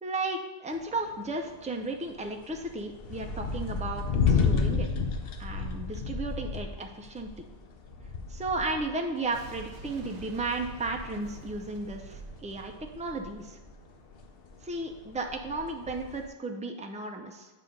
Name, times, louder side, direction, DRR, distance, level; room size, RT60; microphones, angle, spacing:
voice 1, 0.0-4.9 5.4-7.3 8.3-13.6 14.6-17.5, right 2 dB, 10° right, 3 dB, 0.4 m, -34 dB
sound 1, 0.7-9.4 9.7-13.8 14.1-16.3, left 5 dB, 60° left, 0.9 m, -32 dB
Boom, 9.3-14.2, right 4 dB, 80° right, 1.2 m, -47 dB
9.1 x 3.4 x 5.2 m, 1.3 s
omnidirectional pair, 1.1 m